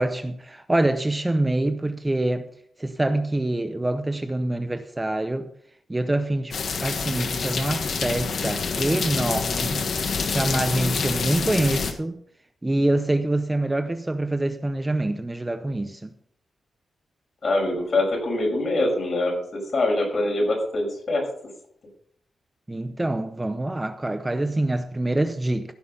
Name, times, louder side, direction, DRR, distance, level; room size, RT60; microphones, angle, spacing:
voice 1, 0.0-2.5 2.8-5.5 5.9-6.5 6.8-9.8 10.2-12.2 12.6-16.1 22.7-25.7, right 1 dB, 15° right, 0.7 m, -25 dB
sound 1, 6.5-11.9, left 5 dB, 65° left, 1.5 m, -27 dB
voice 2, 17.4-21.2, left 2 dB, 45° left, 5.7 m, -24 dB
15.5 x 6.3 x 5.5 m
wide cardioid pair, 120°, 0 cm